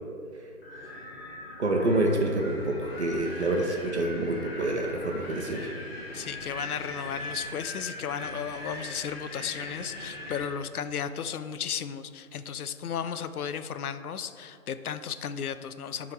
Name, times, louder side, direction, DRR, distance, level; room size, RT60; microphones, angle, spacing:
Wind, 0.6-10.5, left 1 dB, 40° left, 1.5 m, -40 dB
voice 1, 1.6-5.7, right 1 dB, 50° right, 1 dB, 0.9 m, -27 dB
voice 2, 6.1-16.1, left 8 dB, 80° left, 11 dB, 0.5 m, -34 dB
9.7 x 3.8 x 4.5 m, 2.4 s
hypercardioid pair, 170°, 44 cm